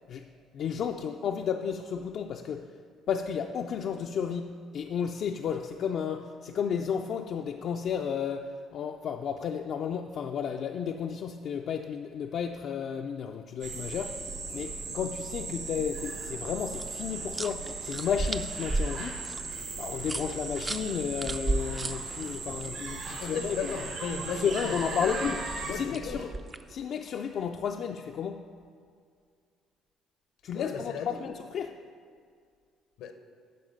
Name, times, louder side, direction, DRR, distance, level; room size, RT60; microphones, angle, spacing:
voice 1, 0.5-2.6 3.1-4.5 4.7-14.2 14.5-19.2 19.8-23.8 24.4-25.4 25.7-26.3 26.7-28.4 30.4-31.7, left 7 dB, 60° left, 4 dB, 0.4 m, -32 dB
sound 1, 13.6-25.7, right 3 dB, 75° right, 2.4 m, -38 dB
sound 2, 16.7-22.7 25.3-26.7, right 2 dB, 25° right, 0.4 m, -35 dB
voice 2, 23.2-25.2 25.6-26.3 30.5-31.2 33.0-33.1, left 6 dB, 80° left, 7 dB, 0.8 m, -36 dB
9.2 x 5.5 x 5.5 m, 2.1 s
cardioid pair, 90°, 0 cm